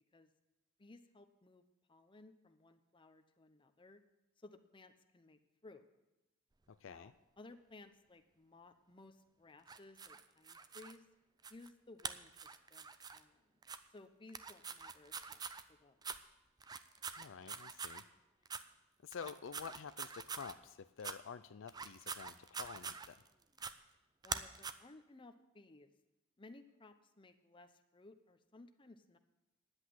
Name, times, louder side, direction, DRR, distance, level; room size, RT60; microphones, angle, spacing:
voice 1, 0.8-4.0 4.4-5.8 6.8-11.1 11.5-13.4 13.9-15.4 15.7-16.0 24.2-25.9 26.4-29.2, left 2 dB, 25° left, 8 dB, 0.7 m, -59 dB
voice 2, 6.7-7.1 17.2-18.0 19.0-23.2, left 6 dB, 65° left, 11 dB, 0.4 m, -49 dB
sound 1, 9.7-10.9 11.4-11.7 12.0-13.2 13.6-13.8 14.3-15.6 16.0-16.2 16.6-18.0 18.4-18.6 19.1-20.5 21.0-21.1 21.7-23.3 23.6-23.7 24.2-24.7, right 5 dB, 20° right, 0.4 m, -45 dB
10.5 x 8.1 x 7.5 m, 0.95 s
head